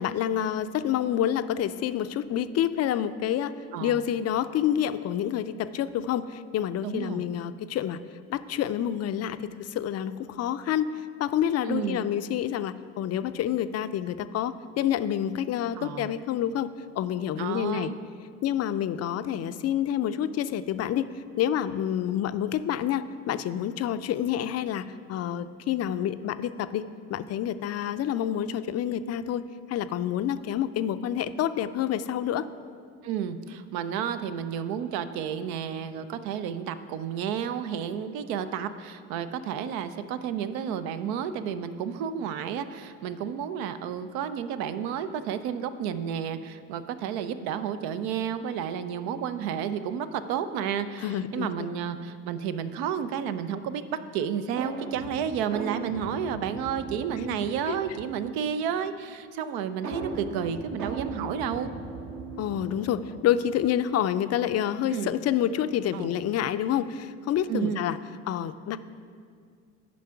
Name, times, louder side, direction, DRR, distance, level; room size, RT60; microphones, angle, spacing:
voice 1, 0.0-3.5 3.8-8.0 8.3-17.9 18.4-21.1 21.4-26.8 27.1-32.5 51.0-51.7 57.7-57.8 62.4-68.0 68.3-68.8, left 10 dB, 45° left, 12 dB, 0.4 m, -28 dB
voice 2, 6.8-7.3 11.7-12.1 15.8-16.1 17.4-18.0 33.0-61.7 64.9-65.2 65.9-66.2 67.5-67.8, right 8 dB, 75° right, 11 dB, 0.6 m, -31 dB
sound 1, 54.6-58.3 59.8-63.4, right 3 dB, 50° right, 1.0 m, -38 dB
9.2 x 5.2 x 5.7 m, 2.2 s
hypercardioid pair, 65°, 37 cm